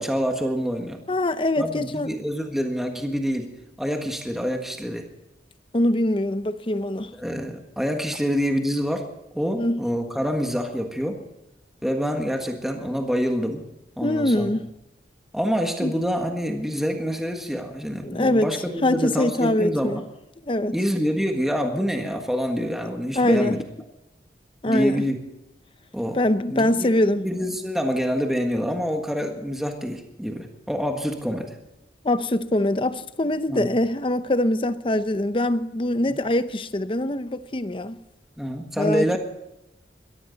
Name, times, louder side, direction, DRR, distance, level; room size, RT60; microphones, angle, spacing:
voice 1, 0.0-1.0 1.6-5.1 7.1-9.0 9.3-11.2 11.8-13.7 14.0-14.5 15.3-20.0 20.7-23.6 24.7-25.2 25.9-26.2 26.5-26.9 27.2-31.5 33.5-33.7 38.4-39.2, equal, ahead, 1.5 m, -26 dB
voice 2, 1.1-2.1 5.7-7.1 9.6-9.8 14.0-14.7 15.8-15.9 18.0-18.5 18.8-20.0 20.4-20.8 22.6-22.7 23.2-23.6 24.6-25.0 26.1-27.3 32.0-38.0 38.8-39.2, left 1 dB, 30° left, 0.7 m, -23 dB
21.0 x 15.0 x 4.1 m
head